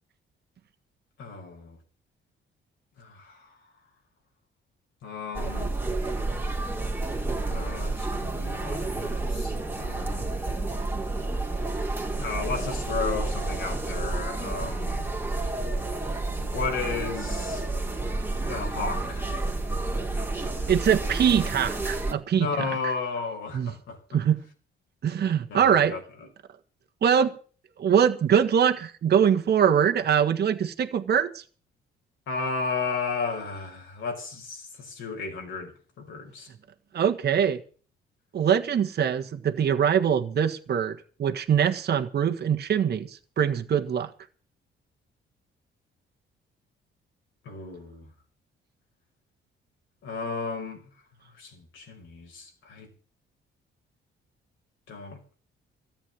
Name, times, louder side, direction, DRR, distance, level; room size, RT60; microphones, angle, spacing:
voice 1, 1.2-1.8 3.0-3.4 5.0-5.7 7.5-9.5 9.8-10.3 12.2-15.1 16.4-17.6 18.5-19.3 22.4-24.0 25.5-26.0 32.3-35.7 36.0-36.5 47.5-48.1 50.0-50.8 51.4-52.9 54.9-55.2, left 4 dB, 75° left, 5.4 m, -33 dB
sound 1, 5.3-22.1, right 2 dB, 10° right, 2.7 m, -30 dB
voice 2, 20.7-22.5 22.8-22.9 23.5-23.7 24.1-24.4 25.0-25.9 27.0-27.4 27.8-31.4 36.9-37.6 38.3-43.1 43.4-44.1, right 8 dB, 55° right, 1.6 m, -23 dB
14.0 x 8.7 x 8.9 m
cardioid pair, 90°, 20 cm